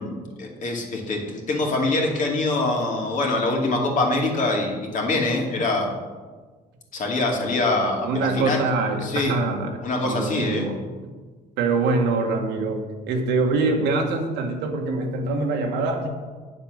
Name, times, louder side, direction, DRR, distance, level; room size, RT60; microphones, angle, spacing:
voice 1, 0.0-5.9 6.9-8.6 9.0-9.3 9.8-10.7, left 2 dB, 50° left, 0 dB, 2.4 m, -24 dB
voice 2, 8.0-9.8 10.0-10.8 11.6-16.1, right 3 dB, 85° right, 3 dB, 1.7 m, -24 dB
9.2 x 7.2 x 6.5 m, 1.4 s
cardioid pair, 110°, 17 cm